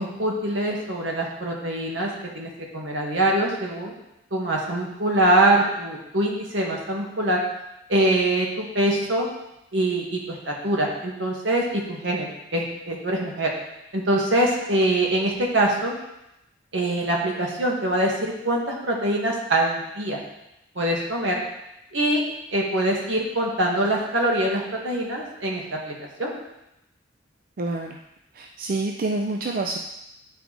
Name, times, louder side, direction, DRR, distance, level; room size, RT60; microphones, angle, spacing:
voice 1, 0.0-3.9 4.3-7.4 7.9-9.3 9.7-13.5 13.9-15.9 16.7-20.2 20.8-21.4 21.9-22.2 22.5-25.9 26.2-26.4, right 1 dB, 75° right, -1 dB, 1.6 m, -24 dB
voice 2, 27.6-28.0 28.3-29.8, right 2 dB, 50° right, 2 dB, 0.4 m, -27 dB
9.4 x 4.7 x 3.9 m, 0.88 s
head